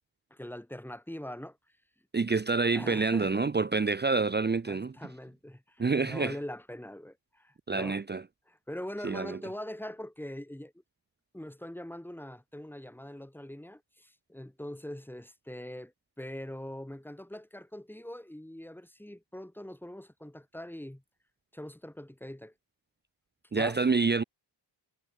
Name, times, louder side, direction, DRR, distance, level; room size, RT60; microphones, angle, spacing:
voice 1, 0.3-1.6 2.7-3.5 4.7-8.0 8.5-10.7 11.3-21.0 21.5-22.5 23.5-23.8, left 1 dB, 5° left, 3.5 m, -42 dB
voice 2, 2.1-4.9 5.8-6.3 7.7-8.2 9.0-9.4 23.5-24.2, right 4 dB, 25° right, 0.7 m, -27 dB
wide cardioid pair, 120°, 45 cm